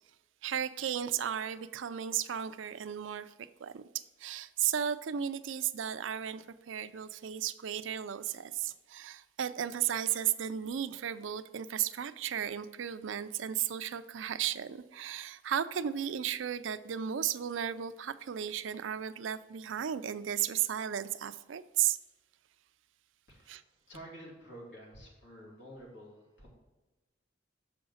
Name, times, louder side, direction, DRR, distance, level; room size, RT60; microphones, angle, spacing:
voice 1, 0.4-3.8 4.2-22.0 23.5-23.6, right 9 dB, 80° right, 13 dB, 0.4 m, -34 dB
voice 2, 23.3-26.5, equal, 70° left, -4 dB, 2.6 m, -50 dB
6.9 x 5.1 x 6.3 m, 1.1 s
head